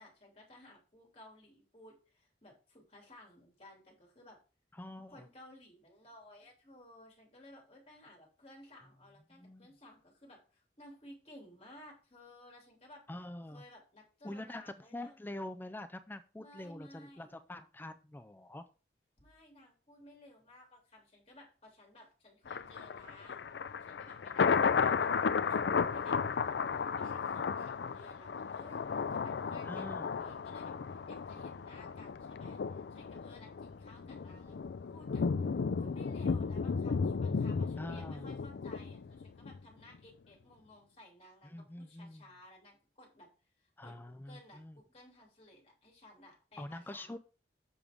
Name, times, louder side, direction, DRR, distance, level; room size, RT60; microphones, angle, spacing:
voice 1, 0.0-4.4 5.1-13.0 13.5-15.1 16.4-17.4 19.2-23.5 23.8-43.3 43.6-47.2, left 1 dB, 35° left, -1 dB, 2.8 m, -57 dB
voice 2, 4.8-5.3 9.4-9.7 13.1-13.6 14.2-18.7 29.6-30.1 37.8-38.4 41.4-42.3 43.8-44.8 46.6-47.2, left 1 dB, 10° left, 10 dB, 0.4 m, -45 dB
Thunder, 22.5-39.6 39.9-40.0, left 5 dB, 75° left, 0.4 m, -34 dB
7.1 x 6.2 x 3.5 m, 0.35 s
head